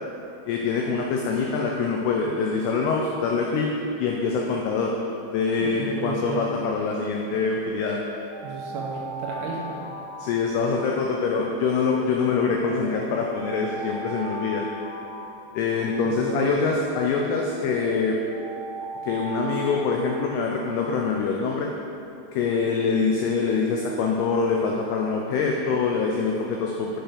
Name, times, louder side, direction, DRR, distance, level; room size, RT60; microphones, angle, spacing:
voice 1, 0.5-3.7 4.0-4.9 5.3-8.0 10.2-14.7 15.6-18.2 19.0-21.7 22.3-27.0, left 4 dB, 90° left, 0 dB, 2.3 m, -24 dB
voice 2, 5.6-6.4 8.4-9.8 16.0-16.6, right 5 dB, 80° right, -2 dB, 2.7 m, -33 dB
Alarm, 7.6-11.8 12.3-16.8 17.3-21.1, right 1 dB, 65° left, 2.9 m, -38 dB
7.6 x 4.4 x 5.0 m, 2.9 s
omnidirectional pair, 5.3 m